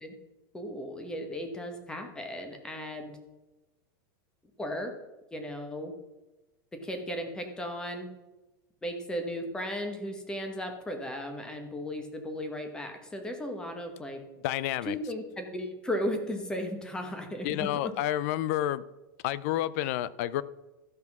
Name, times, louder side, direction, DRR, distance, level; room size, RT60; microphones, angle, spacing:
voice 1, 0.5-3.2 4.6-4.9 5.3-5.9 6.8-8.1 8.8-14.2 14.8-17.9, equal, 5° left, 1.1 m, -35 dB
voice 2, 14.4-15.0 17.4-18.8 19.2-20.4, left 13 dB, 40° left, 0.4 m, -29 dB
13.0 x 5.9 x 6.0 m
supercardioid pair, 170°, 12 cm